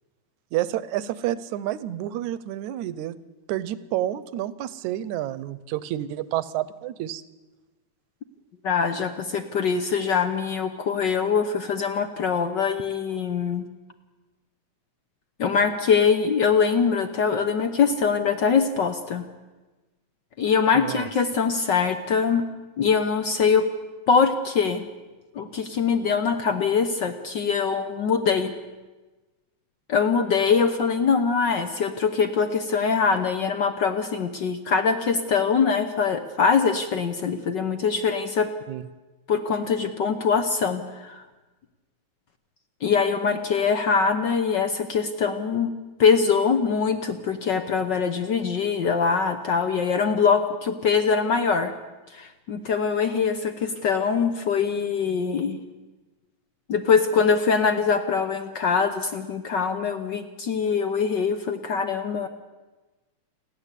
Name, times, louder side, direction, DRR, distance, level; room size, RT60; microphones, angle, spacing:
voice 1, 0.5-3.2 3.5-7.2 20.7-21.1 38.7-38.8, right 13 dB, 80° right, 16 dB, 2.2 m, -29 dB
voice 2, 8.6-13.7 15.4-19.3 20.4-22.5 22.8-23.7 24.1-24.8 25.3-28.5 29.9-38.5 39.3-41.2 42.8-45.7 46.0-51.7 52.1-55.6 56.7-62.3, left 6 dB, 65° left, 9 dB, 1.1 m, -23 dB
29.0 x 11.5 x 8.3 m, 1.2 s
omnidirectional pair, 3.3 m